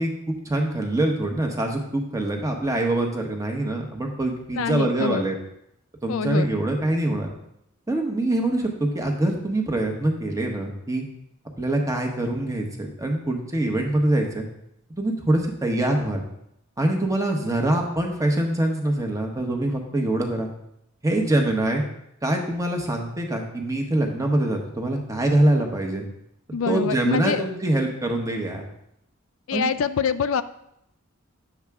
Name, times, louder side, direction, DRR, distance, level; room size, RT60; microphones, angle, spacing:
voice 1, 0.0-5.4 6.0-7.3 7.9-11.0 11.6-14.5 15.0-16.2 16.8-20.5 21.0-21.8 22.2-26.1 26.7-28.6 29.5-29.7, right 1 dB, 15° right, 2 dB, 1.2 m, -24 dB
voice 2, 4.5-5.2 6.1-6.5 26.5-27.4 29.5-30.4, left 6 dB, 70° left, 12 dB, 0.4 m, -25 dB
9.6 x 7.3 x 3.6 m, 0.78 s
head